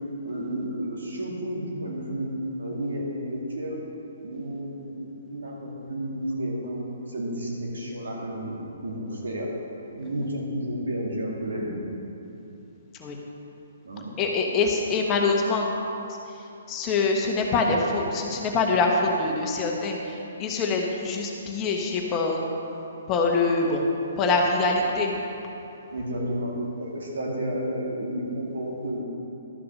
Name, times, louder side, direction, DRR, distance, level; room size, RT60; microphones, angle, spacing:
voice 1, 0.2-2.3 2.6-3.8 4.2-9.5 9.9-11.7 13.8-14.1 25.9-26.5 26.8-29.0, right 1 dB, 80° right, -3 dB, 2.4 m, -31 dB
voice 2, 14.2-15.7 16.7-22.4 23.1-23.8 24.2-25.1, left 3 dB, 25° left, 0 dB, 1.2 m, -24 dB
12.0 x 5.9 x 6.4 m, 2.9 s
hypercardioid pair, 140°, 0 cm